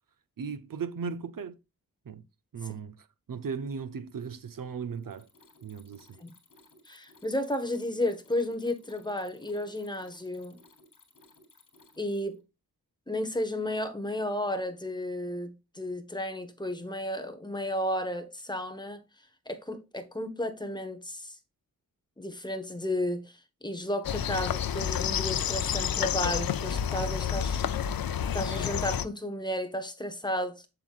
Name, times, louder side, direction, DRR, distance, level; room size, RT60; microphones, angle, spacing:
voice 1, 0.4-1.6 2.1-2.2 2.5-5.3 5.6-6.2, right 6 dB, 70° right, 0.8 m, -37 dB
Mechanisms, 5.0-12.4, left 2 dB, 60° left, 3.4 m, -59 dB
voice 2, 6.9-10.6 12.0-12.4 13.1-19.0 19.5-21.4 22.2-27.6 28.3-30.7, left 1 dB, 10° left, 1.3 m, -33 dB
sound 1, 24.0-29.1, left 8 dB, 75° left, 0.6 m, -29 dB
7.9 x 7.7 x 2.4 m
wide cardioid pair, 135°, 35 cm